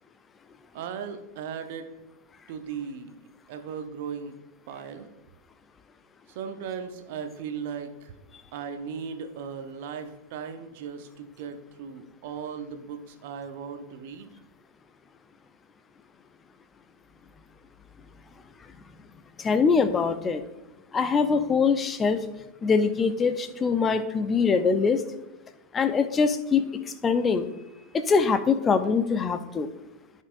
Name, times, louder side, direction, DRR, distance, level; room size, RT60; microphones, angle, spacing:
voice 1, 0.7-1.9 2.5-3.2 3.5-4.3 4.7-5.1 6.3-8.1 8.5-14.3, right 6 dB, 50° right, 7 dB, 0.9 m, -37 dB
voice 2, 19.4-20.5 20.9-22.3 22.6-25.0 25.7-27.5 27.9-29.7, left 5 dB, 20° left, 11 dB, 0.6 m, -23 dB
14.5 x 5.4 x 2.6 m, 1.0 s
figure-of-eight pair, 90°, 0 cm